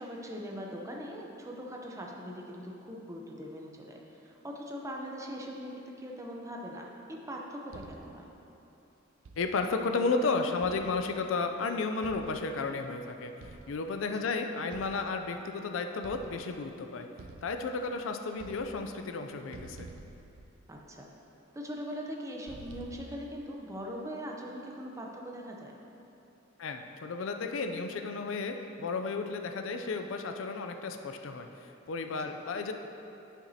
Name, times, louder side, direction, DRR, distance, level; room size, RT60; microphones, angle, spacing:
voice 1, 0.0-8.2 14.0-14.1 20.7-21.1 21.5-25.7 32.1-32.3, equal, 15° right, 0 dB, 0.6 m, -41 dB
sound 1, 7.7-8.3 9.2-9.8 10.6-11.4 12.0-12.8 13.4-14.0 14.7-15.5 16.0-16.7 17.2-18.0 18.3-19.2 19.5-21.0 22.5-23.4, right 3 dB, 85° right, 0.4 m, -50 dB
voice 2, 9.4-17.1 17.4-19.9 26.6-32.7, left 4 dB, 75° left, 5 dB, 0.4 m, -33 dB
9.8 x 5.9 x 2.8 m, 2.9 s
head